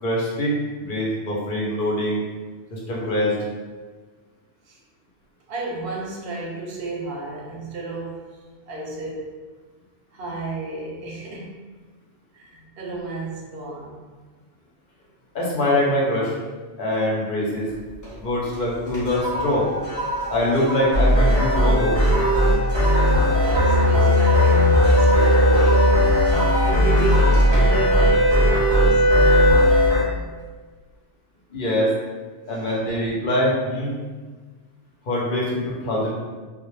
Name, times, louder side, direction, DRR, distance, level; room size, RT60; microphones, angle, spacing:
voice 1, 0.0-0.5 0.8-2.2 2.7-3.4 15.3-16.3 16.8-17.7 18.2-19.7 20.3-21.9 31.5-31.9 32.5-33.9 35.1-36.1, left 1 dB, 55° left, -5 dB, 0.8 m, -23 dB
voice 2, 5.5-8.3 8.7-9.3 10.1-11.6 12.3-14.0 23.2-26.1 26.6-29.8, right 2 dB, 65° right, -2 dB, 0.7 m, -32 dB
sound 1, 17.7-18.2 18.5-29.1 29.5-29.8, right 1 dB, 20° left, 0.6 m, -30 dB
sound 2, 20.0-29.9, left 1 dB, 85° left, 1.1 m, -23 dB
sound 3, 20.9-30.0, equal, 50° right, 0.3 m, -18 dB
2.2 x 2.0 x 3.1 m, 1.4 s
omnidirectional pair, 1.2 m